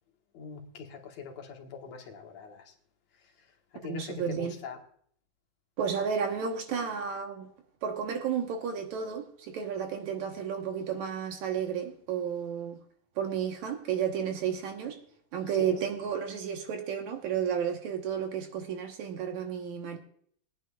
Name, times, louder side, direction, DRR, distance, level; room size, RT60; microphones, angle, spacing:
voice 1, 0.3-2.7 3.8-4.8 15.6-15.8, left 5 dB, 60° left, 2.3 m, -42 dB
voice 2, 3.8-4.5 5.8-7.5 7.8-12.8 13.2-15.0 15.3-20.0, right 7 dB, 65° right, 2.4 m, -32 dB
21.5 x 9.6 x 2.4 m
omnidirectional pair, 3.9 m